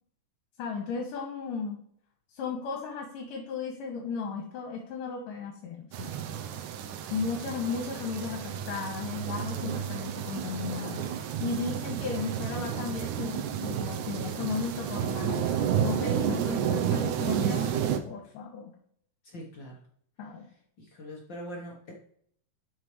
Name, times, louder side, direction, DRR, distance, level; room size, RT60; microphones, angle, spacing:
voice 1, 0.6-1.8 2.3-6.1 7.1-18.7 20.2-20.5, left 5 dB, 75° left, 1 dB, 2.8 m, -35 dB
sound 1, 5.9-18.0, right 8 dB, 75° right, 2.0 m, -31 dB
voice 2, 19.2-19.8 20.8-21.9, equal, 55° left, -2 dB, 1.3 m, -42 dB
11.5 x 6.1 x 3.3 m, 0.65 s
omnidirectional pair, 3.9 m